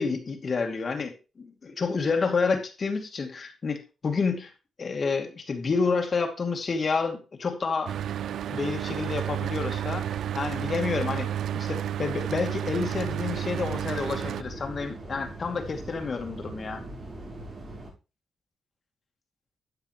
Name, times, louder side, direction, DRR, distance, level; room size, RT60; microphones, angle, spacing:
voice 1, 0.0-4.5 4.8-8.0 8.5-16.8, left 4 dB, 40° left, 4 dB, 2.4 m, -29 dB
Mechanical fan, 7.9-14.4, right 10 dB, 85° right, 0.4 m, -31 dB
sound 1, 12.7-17.9, right 2 dB, 35° right, 6.6 m, -41 dB
13.0 x 8.1 x 3.1 m, 0.30 s
wide cardioid pair, 135°, 0 cm